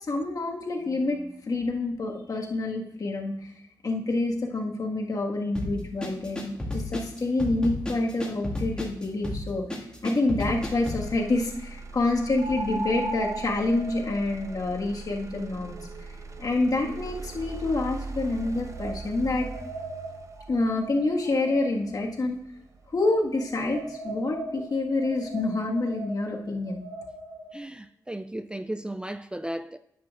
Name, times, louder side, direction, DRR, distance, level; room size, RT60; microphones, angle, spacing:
voice 1, 0.1-3.5 3.8-9.6 10.0-15.8 16.4-19.5 20.5-22.4 22.9-26.8, left 2 dB, 55° left, 1.7 m, -27 dB
sound 1, 5.5-11.1, left 1 dB, 10° left, 2.2 m, -33 dB
sound 2, 9.8-9.9 12.4-17.5 18.3-22.0 23.0-27.6, right 2 dB, 80° right, 1.0 m, -39 dB
Motor vehicle (road), 10.5-24.5 24.9-25.4, right 3 dB, 40° right, 0.8 m, -42 dB
voice 2, 27.5-29.8, right 1 dB, 10° right, 0.3 m, -35 dB
10.0 x 8.4 x 2.5 m
cardioid pair, 60°, 8 cm